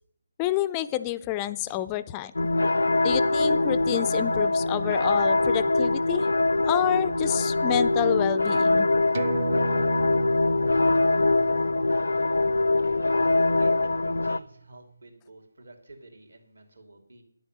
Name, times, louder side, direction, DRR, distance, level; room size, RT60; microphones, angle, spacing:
voice 1, 0.4-2.3 3.0-6.3 6.6-8.9, left 13 dB, 20° left, 15 dB, 0.3 m, -29 dB
sound 1, 2.4-14.4, left 2 dB, 70° left, 0.5 m, -23 dB
sound 2, 9.1-14.1 14.4-14.5, right 5 dB, 40° right, 0.7 m, -37 dB
voice 2, 13.3-17.2, right 2 dB, 75° right, 5 dB, 2.9 m, -49 dB
9.8 x 8.0 x 7.9 m, 0.68 s
figure-of-eight pair, 155°, 0 cm